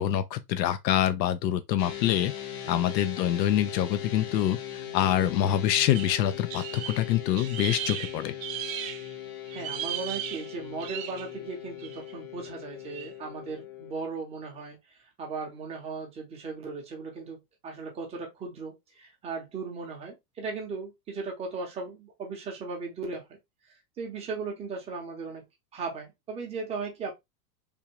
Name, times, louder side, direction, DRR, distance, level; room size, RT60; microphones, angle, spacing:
voice 1, 0.0-2.3 2.7-4.6 4.9-8.3, left 11 dB, 85° left, 0.6 m, -25 dB
sound 1, 1.8-13.9, left 11 dB, 40° left, 0.7 m, -40 dB
sound 2, 5.9-9.1 9.5-11.3 11.8-12.1 12.9-13.1, right 10 dB, 55° right, 0.7 m, -37 dB
voice 2, 9.5-23.4 23.6-25.4 25.7-27.1, right 4 dB, 15° right, 0.6 m, -37 dB
3.5 x 2.4 x 2.8 m
supercardioid pair, 150°, 49 cm